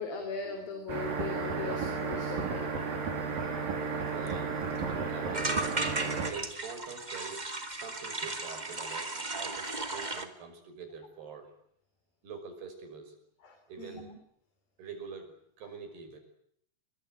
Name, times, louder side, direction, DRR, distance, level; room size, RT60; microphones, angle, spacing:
voice 1, 0.0-2.7 5.0-5.1 13.4-14.2 15.6-15.7, left 4 dB, 65° left, 6 dB, 5.6 m, -39 dB
sound 1, 0.9-6.3, right 5 dB, 60° right, 5.6 m, -33 dB
sound 2, 3.9-4.0 4.3-4.4 4.6-4.9 5.3-10.3, right 2 dB, 15° right, 1.6 m, -36 dB
voice 2, 4.1-4.6 5.1-5.8 6.3-11.5 12.2-13.2 13.7-14.1 14.8-16.2, right 5 dB, 90° right, 7 dB, 7.7 m, -45 dB
27.0 x 23.0 x 9.1 m, 0.70 s
omnidirectional pair, 4.5 m